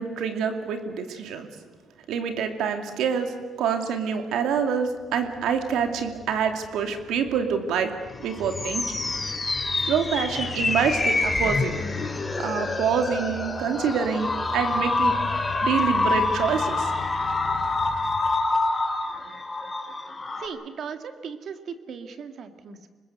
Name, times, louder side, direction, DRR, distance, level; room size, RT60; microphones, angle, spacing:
voice 1, 0.0-1.5 2.1-7.9 8.2-9.1 9.8-11.7 12.4-15.2 15.6-16.9, right 7 dB, 85° right, 6 dB, 2.5 m, -26 dB
sound 1, 4.8-19.2, left 6 dB, 50° left, 2.7 m, -41 dB
sound 2, 8.1-20.5, left 3 dB, 20° left, 3.5 m, -27 dB
voice 2, 20.4-22.9, right 6 dB, 60° right, 8 dB, 2.0 m, -37 dB
25.5 x 20.5 x 8.2 m, 1.5 s
cardioid pair, 90°, 0 cm